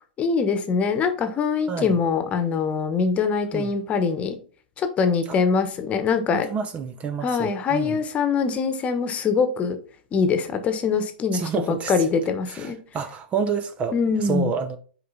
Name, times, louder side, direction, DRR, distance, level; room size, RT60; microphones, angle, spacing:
voice 1, 0.2-4.4 4.8-6.5 7.2-9.8 10.1-11.4 11.7-12.8 13.9-14.5, left 5 dB, 25° left, 1.2 m, -23 dB
voice 2, 1.7-2.0 3.5-3.7 5.3-5.4 6.3-8.0 11.3-11.9 12.5-14.0 14.2-14.8, right 6 dB, 25° right, 0.7 m, -29 dB
6.7 x 4.8 x 4.1 m
hypercardioid pair, 120°, 5 cm